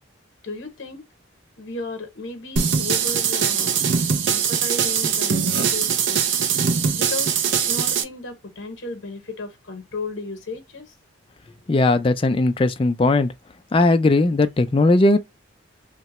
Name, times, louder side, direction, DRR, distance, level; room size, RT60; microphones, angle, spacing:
voice 1, 0.4-1.0 1.6-3.8 4.3-6.2 6.9-10.8, left 3 dB, 65° left, 0.8 m, -34 dB
sound 1, 2.6-8.0, right 7 dB, 65° right, 0.5 m, -21 dB
voice 2, 11.7-13.3 13.7-15.2, left 2 dB, 25° left, 0.3 m, -18 dB
2.8 x 2.2 x 4.0 m
head